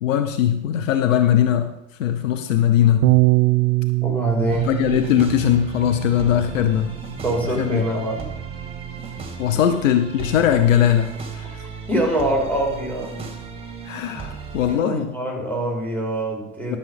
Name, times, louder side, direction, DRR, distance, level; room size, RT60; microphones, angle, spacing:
voice 1, 0.0-1.7 2.0-3.1 4.6-7.0 7.6-7.8 9.4-11.6 13.8-15.1 16.7-16.8, left 10 dB, 65° left, 7 dB, 1.1 m, -20 dB
Bass guitar, 3.0-9.3, right 22 dB, 45° right, 0.5 m, -24 dB
voice 2, 4.0-4.7 7.1-8.3 9.5-9.6 11.5-11.6 11.9-13.2 14.7-16.8, right 1 dB, 5° left, -1 dB, 4.2 m, -24 dB
sound 1, 4.5-14.8, right 5 dB, 15° right, 2.4 m, -36 dB
12.5 x 7.3 x 5.4 m, 0.82 s
figure-of-eight pair, 80°, 42 cm